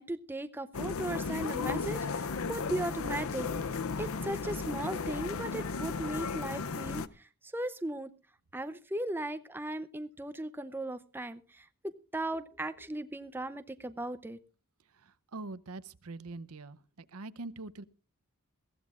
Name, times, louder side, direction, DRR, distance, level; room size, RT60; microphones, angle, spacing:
voice 1, 0.0-3.5 4.0-8.1 8.5-14.4, right 1 dB, 10° right, 11 dB, 0.6 m, -37 dB
sound 1, 0.7-7.1, left 4 dB, 70° left, 0.6 m, -35 dB
voice 2, 15.0-16.8 17.1-17.8, right 3 dB, 80° right, 14 dB, 0.7 m, -43 dB
22.0 x 15.0 x 2.4 m, 0.34 s
head